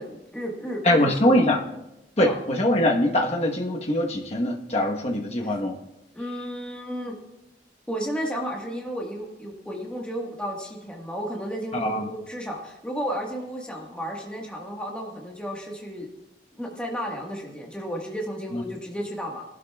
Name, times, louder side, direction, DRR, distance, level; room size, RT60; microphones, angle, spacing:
voice 1, 0.0-1.4 2.2-2.4 5.4-5.5 6.1-7.1 7.9-16.1 16.6-19.4, equal, 5° left, -1 dB, 1.4 m, -33 dB
voice 2, 0.8-1.6 2.2-5.8 11.7-12.1 18.5-18.6, left 1 dB, 35° left, 1 dB, 1.2 m, -22 dB
20.0 x 12.0 x 2.3 m, 0.94 s
head